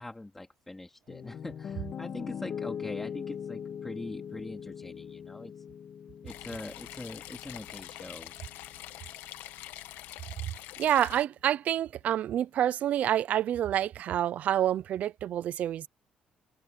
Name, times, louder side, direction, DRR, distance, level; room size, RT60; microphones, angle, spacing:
voice 1, 0.0-5.6 6.2-8.3 10.7-10.8, left 2 dB, 10° left, 2.6 m, -42 dB
Piano, 1.1-9.2, left 8 dB, 40° left, 2.2 m, -41 dB
Rain water pours out of pipe, 6.3-11.2, left 14 dB, 85° left, 1.3 m, -45 dB
voice 2, 10.4-15.9, right 11 dB, 50° right, 0.5 m, -28 dB
cardioid pair, 165°, 3 cm